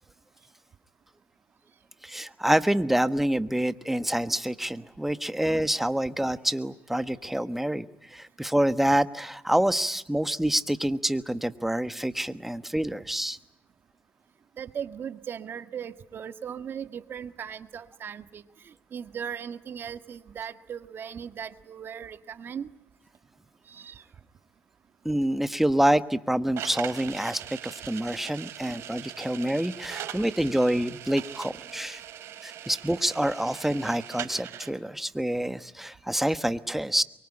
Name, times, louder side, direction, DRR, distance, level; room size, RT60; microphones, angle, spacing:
voice 1, 2.0-13.4 25.0-32.0 32.4-37.0, right 1 dB, 5° right, 12 dB, 1.3 m, -27 dB
voice 2, 14.6-18.4 18.9-22.7 23.7-24.0 28.6-28.7, right 8 dB, 55° right, 10 dB, 1.7 m, -38 dB
sound 1, 26.6-34.7, right 10 dB, 80° right, 3.3 m, -41 dB
23.5 x 23.5 x 9.9 m, 0.82 s
cardioid pair, 90°, 5 cm